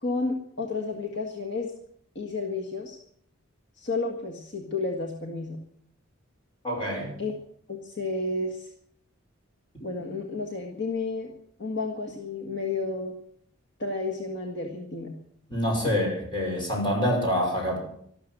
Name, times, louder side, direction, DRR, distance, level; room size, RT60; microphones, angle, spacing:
voice 1, 0.0-1.7 2.1-3.0 3.8-5.6 7.2-7.3 7.7-8.7 9.8-11.3 11.6-13.1 13.8-15.1, left 3 dB, 55° left, 2 dB, 1.7 m, -31 dB
voice 2, 6.6-7.2 15.5-17.8, equal, 25° left, -1 dB, 5.7 m, -26 dB
13.0 x 12.5 x 7.8 m, 0.67 s
head